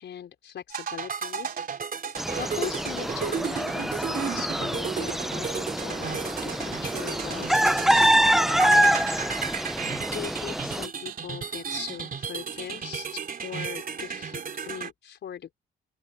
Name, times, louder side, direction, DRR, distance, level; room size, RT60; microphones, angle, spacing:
voice 1, 0.0-1.5 2.3-15.5, left 9 dB, 65° left, 4.7 m, -40 dB
sound 1, 0.7-14.9, right 6 dB, 45° right, 3.6 m, -34 dB
sound 2, 2.2-10.9, equal, ahead, 0.4 m, -25 dB
open air
cardioid pair, 90°, 20 cm